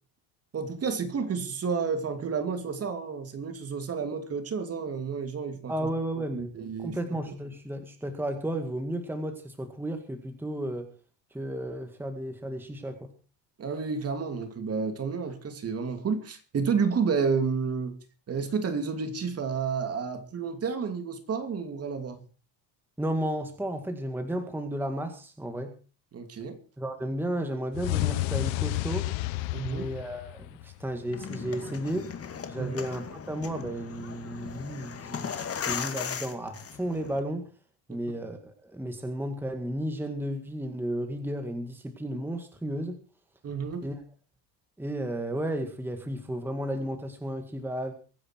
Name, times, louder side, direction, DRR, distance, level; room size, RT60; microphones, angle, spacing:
voice 1, 0.5-5.9 6.3-7.0 13.6-17.9 18.3-22.2 26.1-26.6 29.5-29.9 32.6-32.8 43.4-43.9, right 5 dB, 30° right, 2.8 m, -30 dB
voice 2, 5.7-6.5 6.8-10.9 11.3-13.1 23.0-25.7 26.8-29.1 29.6-32.1 32.5-37.5 37.9-43.0 43.8-43.9 44.8-47.9, right 1 dB, 5° right, 2.0 m, -33 dB
sound 1, 27.7-30.9, left 18 dB, 75° left, 1.2 m, -30 dB
sound 2, 31.0-37.2, left 7 dB, 30° left, 2.3 m, -37 dB
23.5 x 9.9 x 4.6 m
cardioid pair, 130°, 46 cm